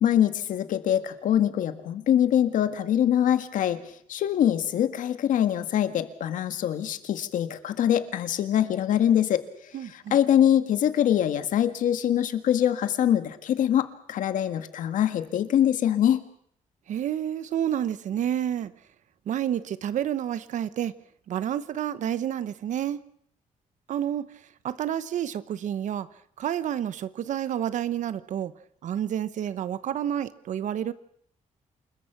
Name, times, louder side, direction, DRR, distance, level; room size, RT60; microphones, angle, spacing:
voice 1, 0.0-3.8 4.1-9.4 9.9-16.2, left 10 dB, 85° left, 9 dB, 1.8 m, -24 dB
voice 2, 9.7-10.2 16.9-18.7 19.3-20.9 21.3-23.0 23.9-24.3 24.6-26.1 26.4-28.5 28.8-30.9, right 10 dB, 70° right, 15 dB, 1.1 m, -29 dB
28.0 x 21.5 x 6.0 m, 0.64 s
cardioid pair, 150°, 13 cm